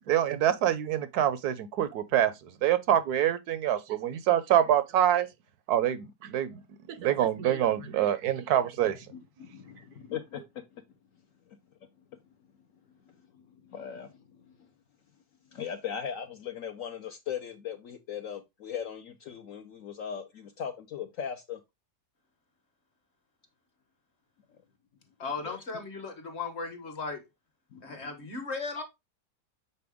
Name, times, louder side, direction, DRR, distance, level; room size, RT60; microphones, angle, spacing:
voice 1, 0.1-2.3 2.6-5.3 5.7-6.6 6.9-9.0, right 11 dB, 70° right, 1.0 m, -25 dB
voice 2, 9.4-10.4 13.7-14.1 15.5-21.6 25.4-25.6 27.7-28.0, left 8 dB, 65° left, 0.8 m, -38 dB
voice 3, 25.2-27.2 27.8-28.8, left 4 dB, 45° left, 1.2 m, -36 dB
6.8 x 4.1 x 3.5 m
omnidirectional pair, 1.8 m